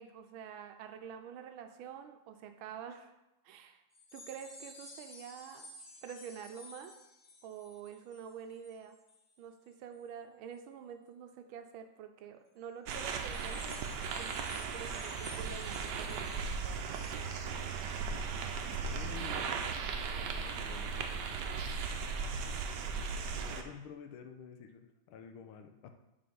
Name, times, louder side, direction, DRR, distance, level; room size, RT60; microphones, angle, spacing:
voice 1, 0.0-3.1 3.4-3.8 4.1-5.7 6.0-7.0 7.4-9.0 9.4-13.7 14.2-16.9, right 8 dB, 85° right, 7 dB, 1.4 m, -47 dB
sound 1, 3.9-9.3 9.6-10.0 10.5-10.6 12.9-18.2 18.6-18.7, left 2 dB, 50° left, 0.5 m, -53 dB
sound 2, 12.9-23.6, right 5 dB, 70° right, 1.1 m, -37 dB
voice 2, 18.4-19.5 20.0-21.3 22.3-22.7 23.0-25.9, left 7 dB, 85° left, 6 dB, 1.6 m, -50 dB
6.8 x 4.1 x 5.4 m, 0.94 s
omnidirectional pair, 2.2 m